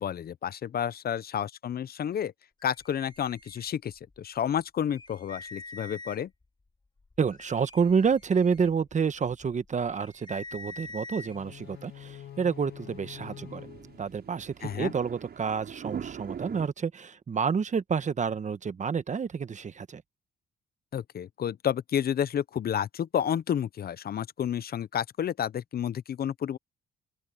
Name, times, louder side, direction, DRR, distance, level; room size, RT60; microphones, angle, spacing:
voice 1, 0.0-2.3 2.6-6.3 14.6-14.9 20.9-26.6, left 9 dB, 50° left, 0.7 m, -30 dB
sound 1, 2.6-4.2 4.6-4.7 4.9-6.5 7.0-11.4, left 3 dB, 25° left, 5.2 m, -46 dB
voice 2, 7.2-13.7 14.0-20.0, right 6 dB, 40° right, 1.1 m, -29 dB
sound 2, 11.1-16.7, right 8 dB, 55° right, 6.5 m, -43 dB
sound 3, 11.2-15.3, left 11 dB, 70° left, 2.3 m, -48 dB
open air
cardioid pair, 90°, 20 cm